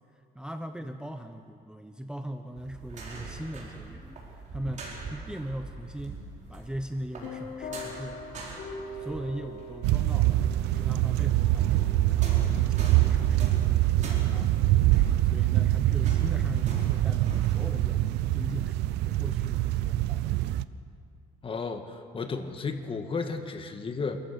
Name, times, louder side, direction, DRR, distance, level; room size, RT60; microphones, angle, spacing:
voice 1, 0.3-4.2 4.5-6.2 6.5-8.5 9.0-10.4 10.7-14.9 15.2-20.6, right 1 dB, 5° right, 7 dB, 0.9 m, -40 dB
sound 1, 2.6-10.4 10.7-17.7, right 3 dB, 45° right, 5.0 m, -41 dB
sound 2, 7.2-15.3, left 2 dB, 65° left, 3.6 m, -44 dB
sound 3, 9.8-20.6, right 15 dB, 85° right, 0.6 m, -24 dB
voice 2, 21.4-24.2, left 4 dB, 30° left, 7 dB, 1.7 m, -33 dB
28.5 x 14.5 x 6.7 m, 2.3 s
cardioid pair, 110°, 17 cm